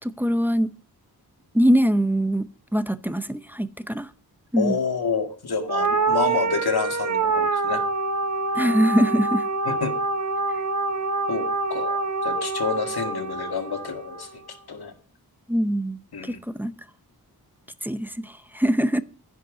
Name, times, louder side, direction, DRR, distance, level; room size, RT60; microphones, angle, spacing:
voice 1, 0.0-0.7 1.5-4.1 4.5-4.8 8.5-9.5 15.5-16.7 17.8-19.0, equal, 5° right, 0.7 m, -23 dB
voice 2, 4.6-7.8 9.7-9.9 11.3-14.3 14.7-14.9 16.1-16.4, left 5 dB, 75° left, 1.9 m, -28 dB
sound 1, 5.7-14.3, right 3 dB, 45° right, 1.3 m, -26 dB
10.5 x 5.6 x 8.6 m
wide cardioid pair, 80°, 38 cm